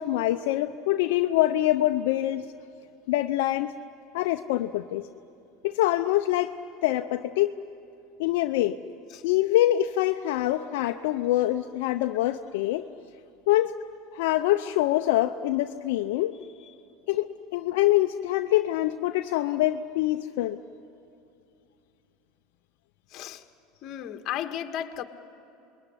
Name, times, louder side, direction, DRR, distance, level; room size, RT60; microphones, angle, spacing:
voice 1, 0.0-2.4 3.1-3.7 4.1-5.0 5.6-6.5 6.8-7.5 8.2-8.8 9.2-12.8 13.5-13.7 14.1-16.3 17.1-20.6, left 14 dB, 75° left, 6 dB, 0.7 m, -25 dB
voice 2, 23.1-23.4 23.8-25.0, left 10 dB, 50° left, 6 dB, 1.7 m, -34 dB
27.0 x 21.5 x 9.9 m, 2.7 s
supercardioid pair, 110°, 0 cm